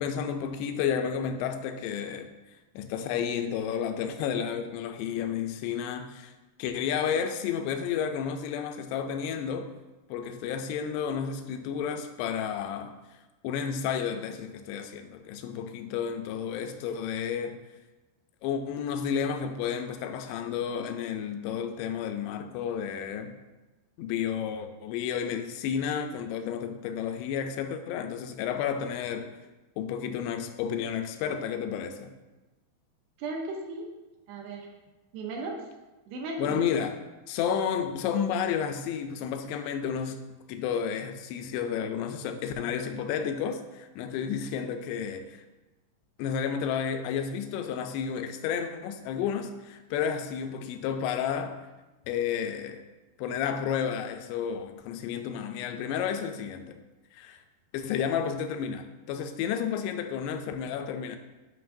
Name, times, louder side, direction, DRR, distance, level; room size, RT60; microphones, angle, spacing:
voice 1, 0.0-2.3 2.8-6.3 6.6-9.7 10.1-13.0 13.4-17.6 18.4-23.4 24.0-29.3 29.8-32.1 36.4-37.0 37.3-40.2 40.5-45.4 46.2-51.6 52.1-52.8 53.2-56.8 57.1-57.4 57.7-61.2, left 7 dB, 85° left, 7 dB, 2.7 m, -31 dB
voice 2, 33.2-33.9 34.3-34.7 35.1-35.6 36.1-36.7, right 3 dB, 75° right, 0 dB, 2.5 m, -35 dB
8.0 x 5.6 x 2.6 m, 1.1 s
omnidirectional pair, 4.7 m